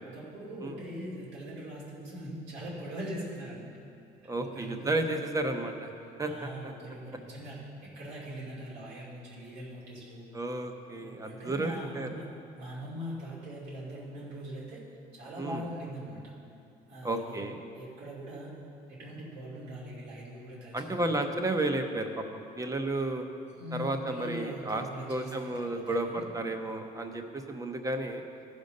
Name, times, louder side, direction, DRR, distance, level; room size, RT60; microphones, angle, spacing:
voice 1, 0.0-3.7 4.2-5.0 6.3-10.3 10.9-12.3 12.6-14.8 15.1-16.3 16.9-17.4 17.7-18.5 18.9-21.2 23.5-26.2, equal, 90° right, -6 dB, 2.7 m, -41 dB
voice 2, 4.3-5.9 6.2-6.3 6.6-6.7 10.3-12.1 15.4-15.6 17.0-17.6 20.7-23.3 23.7-24.8 25.1-28.2, right 2 dB, 20° right, 5 dB, 0.8 m, -32 dB
14.5 x 5.2 x 5.4 m, 2.6 s
cardioid pair, 110°, 17 cm